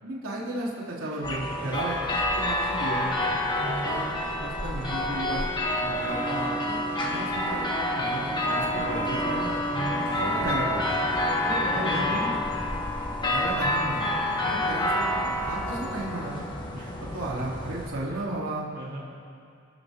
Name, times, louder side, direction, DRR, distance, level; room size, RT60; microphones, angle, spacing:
voice 1, 0.0-3.2 3.8-4.1 4.4-9.5 10.1-10.9 11.7-12.3 13.3-14.2 14.4-16.4 17.0-18.7, right 1 dB, 85° right, -5 dB, 3.4 m, -34 dB
sound 1, 1.2-17.9, left 1 dB, 20° left, 1.7 m, -28 dB
voice 2, 3.1-3.9 9.7-10.0 11.4-12.2 16.7-17.2 18.7-19.0, right 1 dB, 50° right, -5 dB, 2.9 m, -36 dB
sound 2, 8.5-17.8, equal, 85° left, 4.4 m, -44 dB
29.0 x 12.5 x 3.7 m, 2.4 s
head